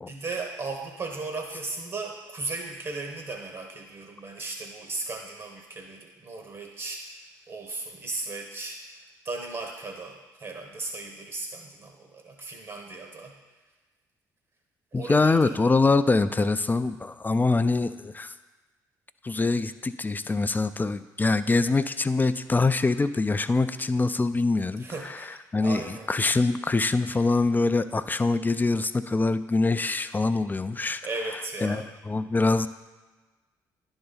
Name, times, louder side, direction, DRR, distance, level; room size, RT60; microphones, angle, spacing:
voice 1, 0.1-7.2 7.5-13.3 14.9-15.6 24.8-26.1 31.0-31.9, right 3 dB, 45° right, 2 dB, 1.1 m, -36 dB
voice 2, 14.9-18.3 19.2-31.0 31.6-32.7, left 3 dB, 20° left, 12 dB, 0.4 m, -24 dB
11.0 x 4.0 x 4.0 m, 1.3 s
hypercardioid pair, 50°, 9 cm